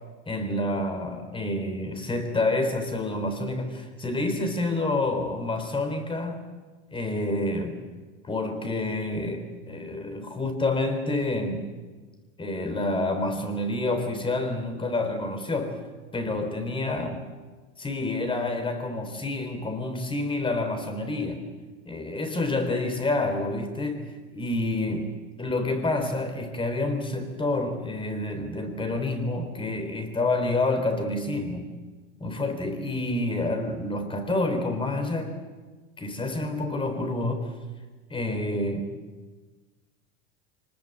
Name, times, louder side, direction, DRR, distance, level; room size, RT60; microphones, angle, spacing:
voice 1, 0.3-6.4 6.9-7.8 8.2-11.7 12.4-15.8 16.1-17.1 17.8-21.4 21.9-25.1 25.4-31.7 32.2-35.4 36.0-37.5 38.1-38.9, left 2 dB, 15° left, 7 dB, 3.8 m, -28 dB
24.5 x 20.0 x 8.0 m, 1.3 s
supercardioid pair, 120°, 31 cm